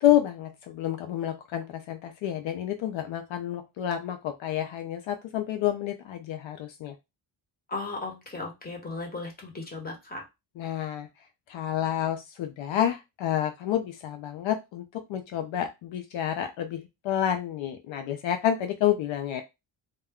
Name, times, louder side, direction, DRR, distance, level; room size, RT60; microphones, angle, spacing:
voice 1, 0.0-6.9 10.6-11.1 11.5-19.4, left 11 dB, 75° left, 7 dB, 0.5 m, -29 dB
voice 2, 7.7-10.2, left 3 dB, 20° left, 0 dB, 1.1 m, -36 dB
2.2 x 2.1 x 3.5 m, 0.23 s
cardioid pair, 105°, 47 cm